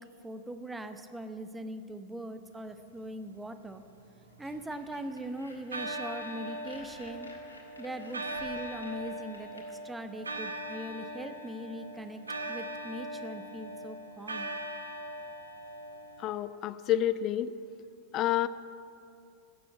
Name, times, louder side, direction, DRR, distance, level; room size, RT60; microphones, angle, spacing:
voice 1, 0.0-3.8 4.4-7.3 7.8-12.2 12.5-14.5, right 1 dB, 10° right, 9 dB, 0.9 m, -41 dB
sound 1, 3.7-5.1 5.7-16.3, right 1 dB, 75° right, 1.0 m, -40 dB
sound 2, 4.4-9.6, left 2 dB, 80° left, 2.2 m, -53 dB
voice 2, 16.2-17.6 18.1-18.5, left 12 dB, 35° left, 14 dB, 0.4 m, -29 dB
15.5 x 7.1 x 8.2 m, 2.5 s
figure-of-eight pair, 90°, 0 cm